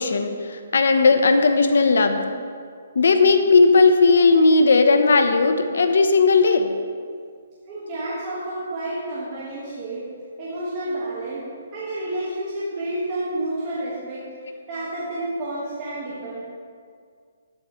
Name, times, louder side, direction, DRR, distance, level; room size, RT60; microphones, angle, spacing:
voice 1, 0.0-2.2 3.0-6.7, left 3 dB, 70° left, 7 dB, 0.8 m, -16 dB
voice 2, 7.7-10.1 10.4-14.2 14.7-16.4, right 1 dB, 25° right, -8 dB, 1.6 m, -30 dB
12.0 x 10.0 x 3.1 m, 2.1 s
hypercardioid pair, 170°, 0 cm